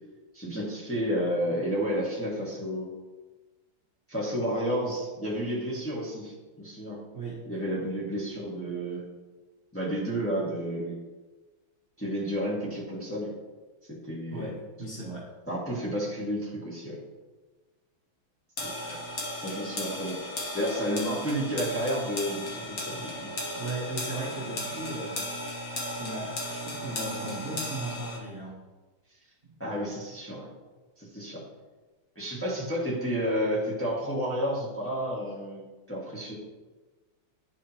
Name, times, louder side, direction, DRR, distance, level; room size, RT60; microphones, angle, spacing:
voice 1, 0.3-2.9 4.1-7.0 7.4-9.0 9.7-11.0 12.0-13.3 13.9-14.5 15.5-17.0 18.6-19.0 19.4-20.2 20.5-23.3 29.6-30.5 31.0-31.4 32.1-35.6 35.9-36.3, equal, 5° left, -6 dB, 1.4 m, -31 dB
voice 2, 7.1-7.5 14.3-15.3 23.5-25.6 26.0-28.6 29.4-29.6, right 2 dB, 30° right, -7 dB, 1.1 m, -37 dB
sound 1, 18.6-28.2, left 1 dB, 45° left, 1.5 m, -36 dB
10.5 x 5.0 x 2.9 m, 1.2 s
omnidirectional pair, 2.4 m